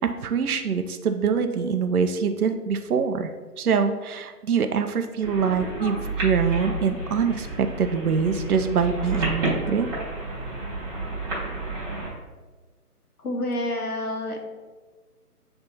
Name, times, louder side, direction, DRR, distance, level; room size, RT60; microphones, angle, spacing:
voice 1, 0.0-3.3 3.6-9.9, right 6 dB, 70° right, 7 dB, 0.6 m, -24 dB
sound 1, 5.2-12.1, right 2 dB, 15° right, 1.2 m, -30 dB
voice 2, 13.2-14.4, left 1 dB, 70° left, 2 dB, 1.3 m, -28 dB
6.9 x 3.4 x 4.1 m, 1.3 s
figure-of-eight pair, 150°, 47 cm